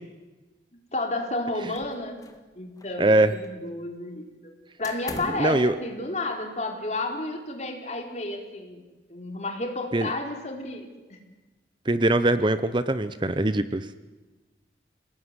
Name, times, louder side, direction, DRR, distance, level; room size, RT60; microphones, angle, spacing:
voice 1, 0.9-2.2 2.6-4.5 4.8-11.2, left 2 dB, 40° left, 3 dB, 4.1 m, -32 dB
sound 1, 1.7-2.5 2.8-3.7 4.8-5.6, left 2 dB, 20° left, 1.9 m, -42 dB
voice 2, 3.0-3.3 5.4-5.7 9.9-10.1 11.9-14.0, right 1 dB, 25° right, 12 dB, 0.8 m, -22 dB
28.0 x 18.5 x 9.7 m, 1.2 s
head